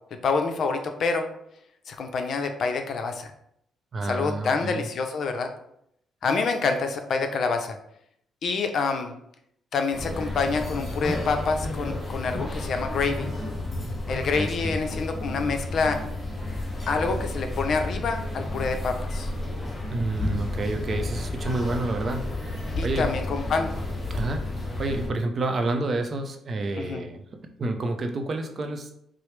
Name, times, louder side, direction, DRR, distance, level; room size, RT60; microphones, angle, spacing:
voice 1, 0.2-1.3 1.9-3.3 4.0-5.5 6.2-7.8 8.4-9.1 9.7-13.3 14.1-16.0 16.9-19.3 22.8-23.7 26.8-27.0, left 4 dB, 60° left, 6 dB, 0.5 m, -27 dB
voice 2, 3.9-4.9 14.3-14.7 19.9-23.1 24.1-24.4 24.8-27.2 27.6-28.9, right 2 dB, 45° right, 5 dB, 0.5 m, -29 dB
sound 1, 9.9-25.1, left 2 dB, 25° left, 1.1 m, -31 dB
4.7 x 2.0 x 3.2 m, 0.71 s
cardioid pair, 90°, 0 cm